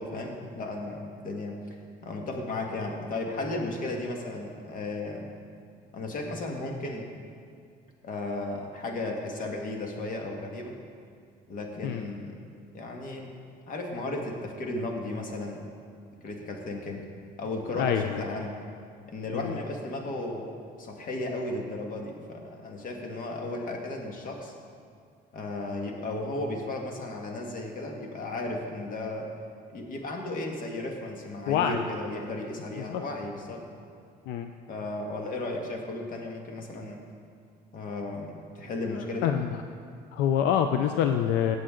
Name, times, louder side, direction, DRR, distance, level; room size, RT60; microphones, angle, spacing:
voice 1, 0.0-5.4 5.9-7.1 8.0-10.7 11.5-12.4 12.7-13.3 13.7-15.6 16.2-17.0 17.4-18.5 19.1-24.5 25.3-29.3 29.7-33.7 34.7-37.0 37.7-39.3, left 2 dB, 55° left, 1 dB, 1.8 m, -35 dB
voice 2, 17.8-18.2 19.3-19.5 31.5-31.8 32.8-33.0 34.3-34.5 39.2-39.6 40.1-41.6, left 9 dB, 85° left, 7 dB, 0.5 m, -26 dB
17.5 x 7.7 x 3.8 m, 2.2 s
cardioid pair, 110°, 17 cm